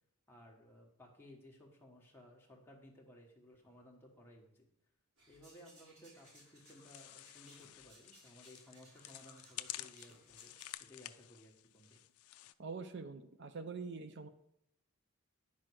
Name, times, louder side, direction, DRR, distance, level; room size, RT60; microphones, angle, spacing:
voice 1, 0.3-4.7 5.3-10.5 10.8-12.0, left 1 dB, 10° left, -2 dB, 1.4 m, -59 dB
sound 1, 5.2-10.7, right 2 dB, 80° right, 3.9 m, -64 dB
sound 2, 6.1-12.5, left 15 dB, 80° left, 0.4 m, -51 dB
voice 2, 12.6-14.3, right 4 dB, 50° right, 9 dB, 0.5 m, -44 dB
9.8 x 6.2 x 4.7 m, 0.76 s
head